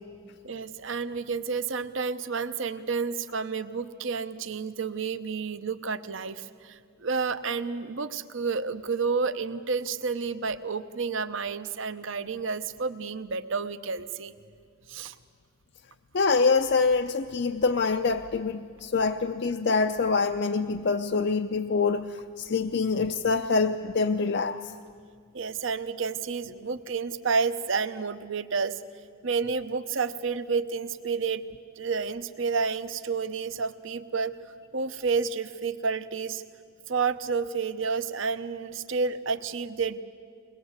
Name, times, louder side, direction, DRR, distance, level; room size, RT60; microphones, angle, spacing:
voice 1, 0.4-14.3 14.9-15.1 25.3-28.8 29.2-31.4 31.8-34.4 34.7-36.4 36.9-40.0, right 5 dB, 60° right, 0.8 m, -30 dB
voice 2, 16.1-24.7, left 4 dB, 50° left, 0.5 m, -25 dB
22.5 x 20.5 x 8.1 m
head